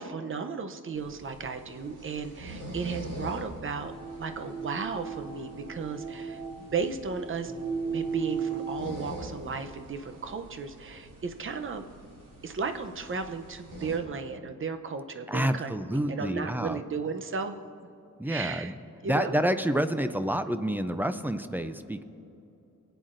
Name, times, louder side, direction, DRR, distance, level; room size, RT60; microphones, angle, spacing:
voice 1, 0.0-3.9 4.2-7.5 7.9-11.9 12.4-17.9 18.2-18.7 19.0-19.4, right 5 dB, 40° right, 7 dB, 0.7 m, -35 dB
sound 1, 0.9-14.0, right 1 dB, 80° right, 2.7 m, -45 dB
sound 2, 3.8-9.1, right 5 dB, 65° right, 1.8 m, -36 dB
voice 2, 15.3-16.8 18.2-18.7 19.0-22.0, equal, 5° right, 10 dB, 0.4 m, -28 dB
26.0 x 9.1 x 2.5 m, 2.8 s
wide cardioid pair, 150°, 32 cm